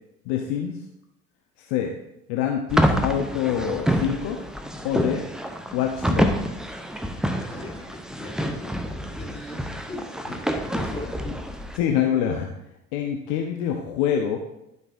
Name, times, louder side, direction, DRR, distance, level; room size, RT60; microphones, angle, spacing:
voice 1, 0.3-0.8 1.6-1.9 2.3-4.4 4.8-5.2 5.7-6.3 11.8-12.5 12.9-14.4, left 9 dB, 50° left, 3 dB, 0.8 m, -25 dB
sound 1, 2.7-11.8, equal, ahead, 0.5 m, -27 dB
voice 2, 7.4-10.4 10.7-11.1, left 2 dB, 15° left, 0 dB, 2.2 m, -39 dB
12.0 x 5.5 x 2.6 m, 0.87 s
figure-of-eight pair, 65°, 42 cm